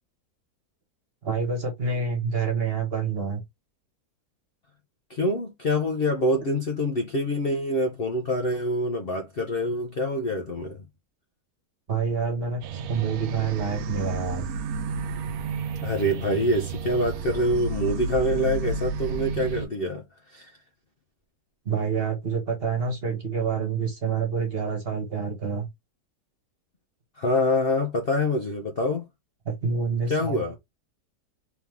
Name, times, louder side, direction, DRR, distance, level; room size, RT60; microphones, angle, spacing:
voice 1, 1.2-3.4 11.9-14.5 21.6-25.7 29.4-30.6, right 5 dB, 40° right, 1.4 m, -27 dB
voice 2, 5.1-10.8 15.8-20.0 20.3-20.5 27.2-29.0 30.1-30.6, left 1 dB, 50° left, 0.8 m, -25 dB
sound 1, 12.6-19.7, right 4 dB, 75° right, 1.0 m, -31 dB
3.5 x 3.1 x 3.5 m
omnidirectional pair, 1.7 m